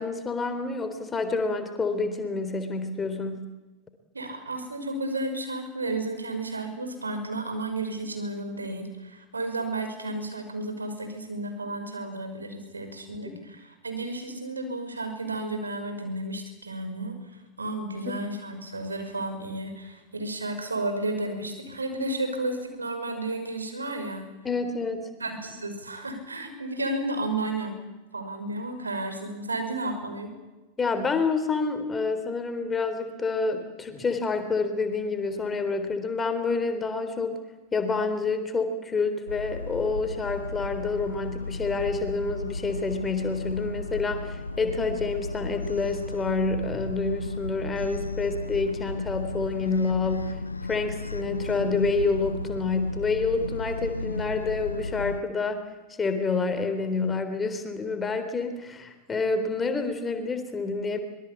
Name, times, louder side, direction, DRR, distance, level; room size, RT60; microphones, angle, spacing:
voice 1, 0.0-3.4 13.3-13.4 18.1-18.2 24.4-25.1 30.8-37.4 37.7-50.4 50.7-55.7 56.0-61.0, left 4 dB, 15° left, 8 dB, 3.7 m, -28 dB
voice 2, 4.1-17.1 17.6-24.2 25.2-27.8 28.1-30.3, right 2 dB, 75° right, 6 dB, 5.7 m, -32 dB
sound 1, 39.3-55.2, left 2 dB, 80° left, 0.9 m, -34 dB
25.0 x 22.5 x 8.6 m, 1.1 s
figure-of-eight pair, 90°, 0 cm